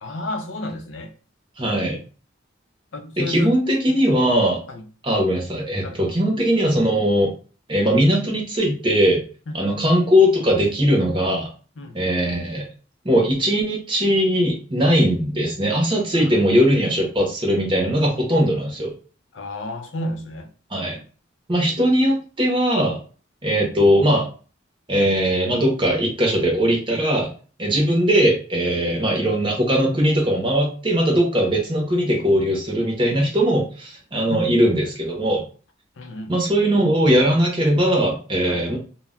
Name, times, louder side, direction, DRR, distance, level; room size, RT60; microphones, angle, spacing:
voice 1, 0.0-1.1 2.9-3.6 4.7-4.9 5.8-6.2 9.5-9.7 11.8-12.0 16.1-16.4 19.3-20.5 24.0-24.1 28.7-28.8 34.3-34.6 36.0-36.5 38.5-38.6, left 1 dB, 70° left, 0.5 m, -32 dB
voice 2, 1.6-2.0 3.2-4.6 5.0-7.3 7.7-9.2 9.5-11.5 11.9-12.6 13.0-18.9 20.7-21.0 21.5-23.0 23.4-24.3 24.9-27.3 27.6-35.4 36.3-38.8, equal, 25° right, 0.7 m, -19 dB
2.2 x 2.1 x 3.6 m
head